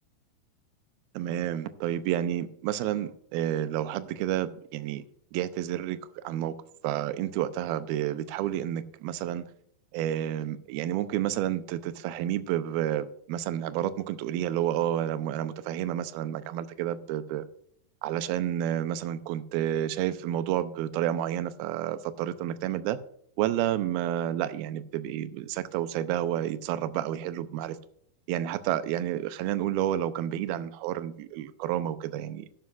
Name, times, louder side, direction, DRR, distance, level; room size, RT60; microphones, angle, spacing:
voice 1, 1.1-5.0 5.3-6.6 6.8-9.4 9.9-17.5 18.0-23.0 23.4-27.8 28.3-32.5, right 11 dB, 80° right, 2.3 m, -30 dB
12.5 x 11.5 x 2.5 m
omnidirectional pair, 4.8 m